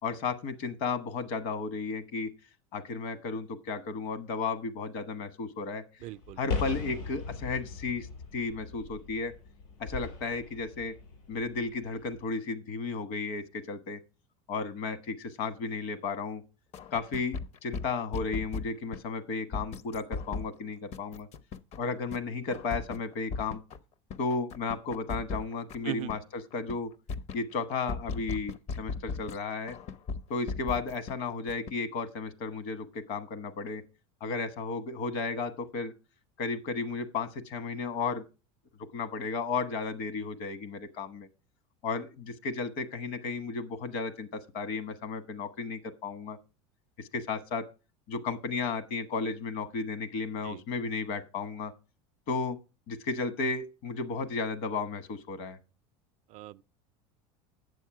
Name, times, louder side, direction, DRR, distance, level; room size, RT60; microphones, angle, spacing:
voice 1, 0.0-2.3 2.7-5.8 6.4-8.1 8.3-9.3 9.8-10.9 11.3-14.0 14.5-16.4 16.9-21.3 21.8-23.6 24.2-26.9 27.3-29.8 30.3-33.8 34.2-35.9 36.4-38.2 38.9-41.3 41.8-46.4 47.0-47.6 48.1-51.7 52.3-52.6 52.9-55.6, left 4 dB, 60° left, 1.2 m, -34 dB
sound 1, 6.0-12.3, left 4 dB, 75° left, 5.0 m, -39 dB
voice 2, 6.0-6.4 25.8-26.1 50.4-50.6 56.3-56.6, right 17 dB, 50° right, 0.4 m, -38 dB
sound 2, 16.7-19.0 19.5-20.5 20.9-21.8 22.1-22.2 22.5-23.8 24.1-26.2 26.5-26.8 27.1-29.4 29.7-31.1 31.5-31.7, left 4 dB, 45° left, 0.6 m, -37 dB
8.4 x 7.2 x 4.7 m
supercardioid pair, 115°, 16 cm